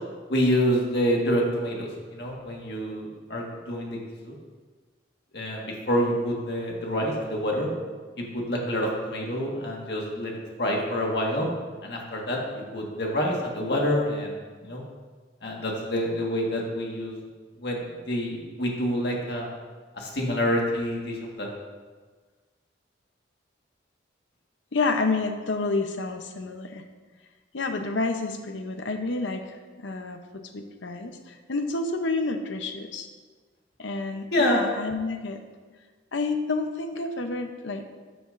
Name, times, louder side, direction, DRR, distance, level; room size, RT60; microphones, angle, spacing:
voice 1, 0.3-4.3 5.3-7.7 8.2-11.5 11.8-14.3 14.6-14.8 15.4-17.2 17.6-19.5 20.0-21.5 34.3-34.6, equal, 60° left, -1 dB, 1.6 m, -27 dB
voice 2, 24.7-26.8 27.5-30.2 30.5-33.1 33.8-35.4 36.1-38.0, left 3 dB, 75° left, 6 dB, 0.7 m, -29 dB
12.5 x 7.0 x 2.6 m, 1.4 s
head